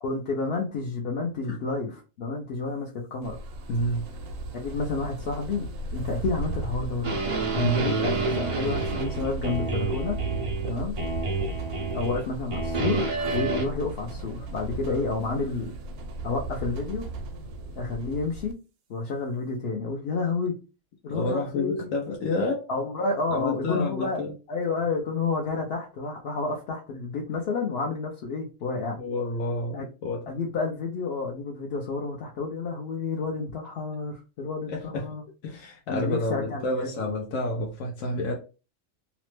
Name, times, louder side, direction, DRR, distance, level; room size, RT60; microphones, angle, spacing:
voice 1, 0.0-3.4 4.6-5.7 5.9-7.4 7.6-10.2 10.6-10.9 11.9-15.8 16.2-17.1 17.8-18.6 18.9-20.5 21.0-21.9 22.7-24.2 24.5-29.0 29.7-29.9 30.3-35.2 35.9-36.9, left 3 dB, 60° left, -1 dB, 0.8 m, -30 dB
sound 1, 3.2-18.5, right 1 dB, 90° right, 1.0 m, -36 dB
voice 2, 3.7-4.0 7.5-7.8 14.8-15.0 21.1-22.7 23.3-24.3 29.0-30.2 34.7-35.0 35.4-38.3, left 2 dB, 85° left, -1 dB, 1.0 m, -29 dB
sound 2, 7.0-10.7 11.0-12.2 12.5-13.7, right 3 dB, 60° right, 0.3 m, -29 dB
2.9 x 2.1 x 3.1 m, 0.32 s
omnidirectional pair, 1.3 m